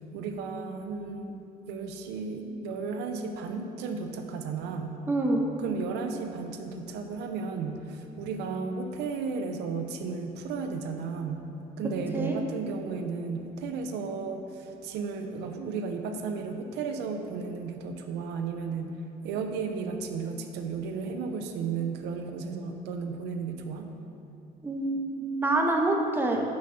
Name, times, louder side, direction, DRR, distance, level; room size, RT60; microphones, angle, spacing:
voice 1, 0.0-5.0 5.6-11.5 11.8-23.9, right 5 dB, 85° right, 5 dB, 0.6 m, -34 dB
voice 2, 5.1-5.5 12.1-12.4 24.6-26.4, right 2 dB, 10° right, 1 dB, 0.9 m, -26 dB
6.2 x 5.5 x 6.3 m, 2.8 s
cardioid pair, 110°, 17 cm